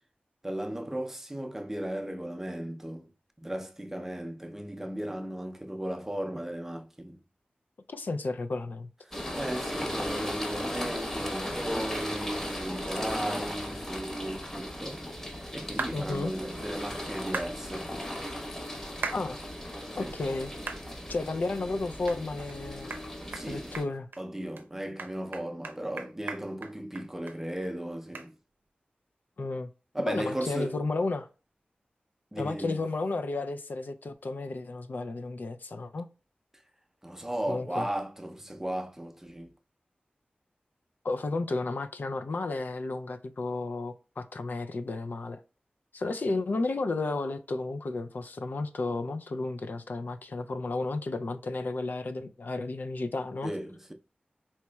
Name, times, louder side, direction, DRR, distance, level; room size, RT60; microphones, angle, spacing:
voice 1, 0.4-3.1 3.4-7.2 9.1-17.9 20.0-20.2 22.8-23.0 23.3-23.7 24.2-28.4 29.9-30.8 32.3-32.9 37.0-39.5 53.4-53.9, right 1 dB, 10° right, 0.5 m, -36 dB
voice 2, 7.9-8.9 15.9-16.3 19.1-19.4 20.0-20.5 21.1-22.9 23.5-24.1 29.4-29.7 30.1-31.3 32.4-36.1 37.5-37.9 41.0-45.4 45.9-53.5, left 3 dB, 65° left, 0.4 m, -32 dB
sound 1, 9.1-23.8, equal, 15° left, 0.9 m, -37 dB
sound 2, 15.8-16.0 17.3-17.5 19.0-19.2 19.7-19.8 20.7-20.8 21.3-21.4 22.1-22.2 22.5-22.6 22.9-23.0 23.3-23.5 23.7-24.2 24.6-24.7 25.0-27.4 27.6-27.7 28.1-28.3, right 4 dB, 90° right, 0.5 m, -36 dB
4.3 x 2.9 x 2.2 m
wide cardioid pair, 90°, 3 cm